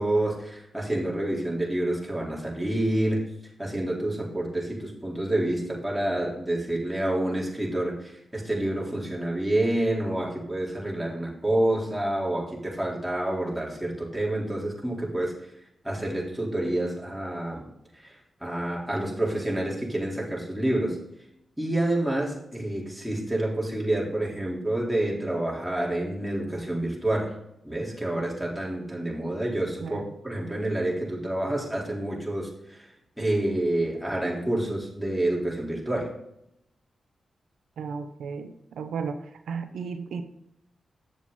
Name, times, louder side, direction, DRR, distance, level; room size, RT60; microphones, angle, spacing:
voice 1, 0.0-3.2 3.6-15.3 15.8-17.6 18.0-18.2 18.4-21.0 21.6-27.4 27.6-32.9 33.2-36.1, right 1 dB, 5° right, -4 dB, 4.1 m, -28 dB
voice 2, 29.8-30.1 37.8-40.2, right 5 dB, 85° right, 7 dB, 0.7 m, -34 dB
9.1 x 7.1 x 4.1 m, 0.79 s
supercardioid pair, 50°, 0 cm